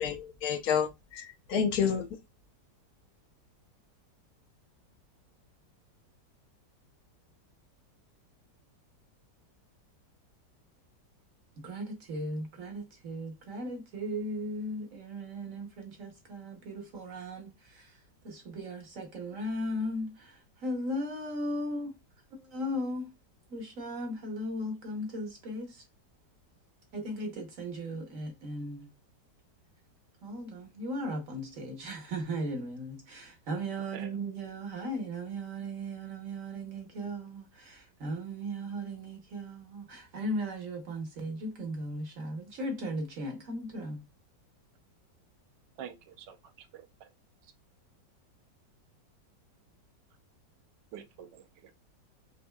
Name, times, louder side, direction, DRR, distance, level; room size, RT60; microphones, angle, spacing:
voice 1, 0.0-2.1, left 7 dB, 65° left, 1.1 m, -29 dB
voice 2, 11.6-18.0 18.2-21.9 22.3-23.1 23.5-25.8 26.9-28.9 30.2-44.0, equal, 55° right, 1.1 m, -37 dB
voice 3, 33.7-34.1 45.8-47.1 47.4-47.5 50.9-51.7, right 9 dB, 80° right, 1.3 m, -47 dB
5.2 x 2.7 x 2.2 m
omnidirectional pair, 1.9 m